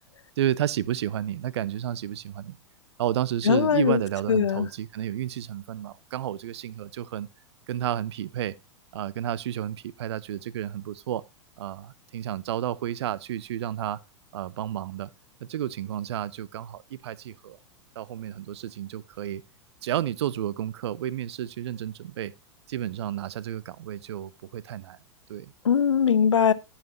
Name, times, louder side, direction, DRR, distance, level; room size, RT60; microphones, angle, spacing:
voice 1, 0.4-2.6 3.0-7.3 7.7-8.5 8.9-11.2 11.6-14.0 14.3-15.1 15.4-17.6 18.0-19.4 19.8-22.3 22.7-25.0 25.3-25.5, right 11 dB, 60° right, 0.5 m, -31 dB
voice 2, 3.5-4.0 4.3-4.7 25.6-26.5, left 7 dB, 75° left, 0.7 m, -21 dB
15.0 x 5.7 x 2.8 m
figure-of-eight pair, 95°, 15 cm